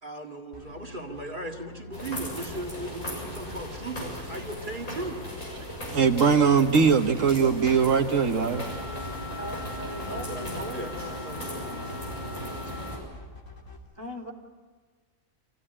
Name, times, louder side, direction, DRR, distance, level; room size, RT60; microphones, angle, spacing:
voice 1, 0.0-5.3 10.0-12.9, right 2 dB, 40° right, 1 dB, 2.1 m, -38 dB
sound 1, 0.5-13.8, left 4 dB, 65° left, 3.3 m, -47 dB
sound 2, 1.9-13.0, equal, 90° left, 7.9 m, -37 dB
voice 2, 5.9-8.6, right 6 dB, 70° right, 4 dB, 1.4 m, -21 dB
Wind instrument woodwind instrument, 8.5-13.1, left 3 dB, 45° left, 1.5 m, -42 dB
voice 3, 9.3-10.9 14.0-14.3, right 1 dB, 15° left, -2 dB, 3.0 m, -38 dB
26.5 x 15.5 x 9.9 m, 1.5 s
omnidirectional pair, 1.4 m